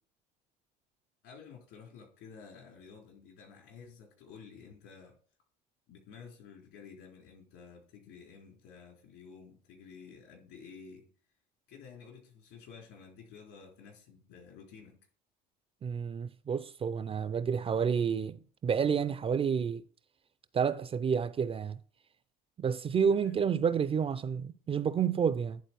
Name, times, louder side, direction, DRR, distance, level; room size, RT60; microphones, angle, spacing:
voice 1, 1.2-5.2 5.9-11.1 11.7-15.0 23.1-23.4, left 6 dB, 65° left, 3.9 m, -52 dB
voice 2, 15.8-19.8 20.5-21.8 22.6-25.6, right 7 dB, 25° right, 0.5 m, -30 dB
10.5 x 3.9 x 4.6 m
hypercardioid pair, 75°, 21 cm